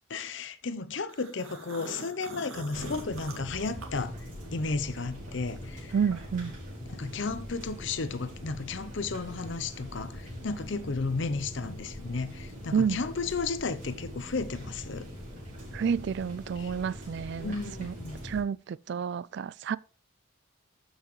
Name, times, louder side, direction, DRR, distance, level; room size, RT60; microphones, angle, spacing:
voice 1, 0.1-4.1 4.5-5.9 6.9-15.1 16.6-16.7 17.4-18.2, left 4 dB, 60° left, 0.7 m, -33 dB
sound 1, 1.1-4.6 5.0-6.5, right 2 dB, 80° right, 1.9 m, -45 dB
sound 2, 2.7-18.4, equal, 40° right, 4.5 m, -42 dB
voice 2, 5.9-6.5 12.7-13.0 15.7-18.0 18.2-19.8, right 6 dB, 55° right, 0.3 m, -30 dB
12.5 x 5.6 x 3.2 m
head